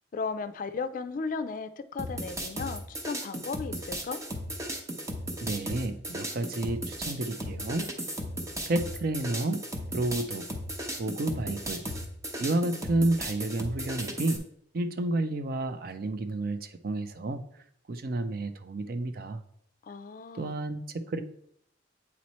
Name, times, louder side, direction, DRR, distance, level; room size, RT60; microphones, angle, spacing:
voice 1, 0.1-4.2 19.8-20.6, left 4 dB, 50° left, 11 dB, 0.4 m, -35 dB
sound 1, 2.0-14.4, equal, 15° right, 0.8 m, -36 dB
voice 2, 5.4-7.9 8.7-9.6 9.9-10.5 11.0-11.9 12.4-14.4 14.7-17.4 17.9-19.4 20.3-21.2, right 2 dB, 55° right, 10 dB, 0.5 m, -30 dB
8.3 x 3.1 x 4.2 m, 0.69 s
head